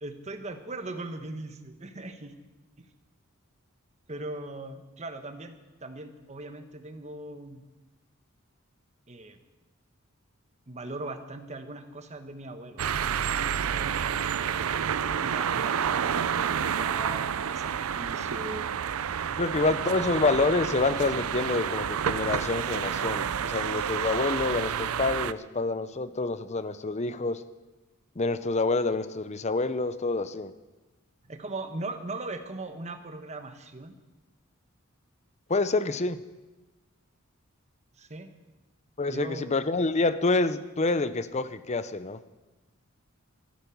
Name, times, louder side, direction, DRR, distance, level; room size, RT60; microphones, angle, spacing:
voice 1, 0.0-2.3 4.1-7.6 9.1-9.4 10.7-13.9 14.5-18.7 19.4-20.1 31.3-33.9 38.0-38.3 39.1-39.5, right 2 dB, 35° right, 7 dB, 1.2 m, -40 dB
sound 1, 12.8-25.3, right 8 dB, 85° right, 0.5 m, -29 dB
voice 2, 19.3-27.4 28.2-30.5 35.5-36.2 39.0-42.2, left 3 dB, 35° left, 13 dB, 0.7 m, -27 dB
13.5 x 11.5 x 7.1 m, 1.2 s
head